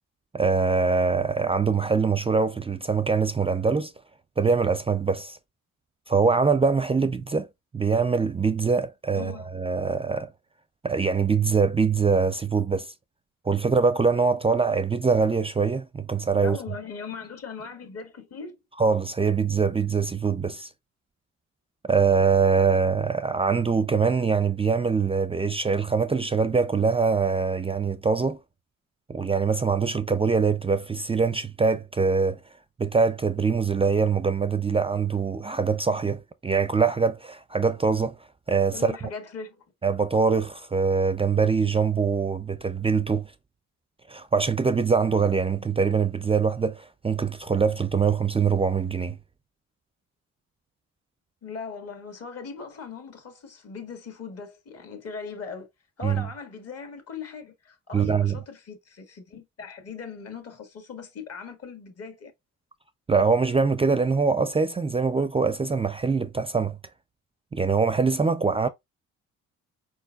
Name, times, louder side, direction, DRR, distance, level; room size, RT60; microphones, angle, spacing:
voice 1, 0.3-3.9 4.4-5.4 6.1-7.5 7.7-10.3 10.8-12.9 13.4-16.6 18.8-20.7 21.9-28.4 29.1-32.4 32.8-38.2 38.5-38.9 39.8-43.3 44.1-49.2 56.0-56.3 57.9-58.4 63.1-66.8 67.5-68.7, right 5 dB, 20° right, 0.4 m, -23 dB
voice 2, 9.1-9.5 16.3-18.6 38.7-39.6 51.4-55.7 56.0-62.3, left 5 dB, 55° left, 1.9 m, -39 dB
4.5 x 4.4 x 2.3 m
cardioid pair, 90°, 30 cm